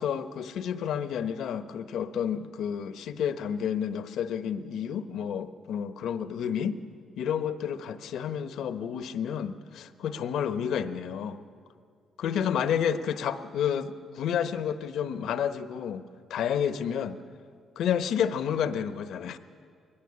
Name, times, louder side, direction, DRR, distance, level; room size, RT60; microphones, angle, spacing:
voice 1, 0.0-6.8 7.2-11.4 12.2-16.0 16.3-17.2 17.8-19.4, left 8 dB, 80° left, 10 dB, 1.0 m, -30 dB
21.5 x 16.5 x 10.0 m, 2.1 s
cardioid pair, 90°, 0 cm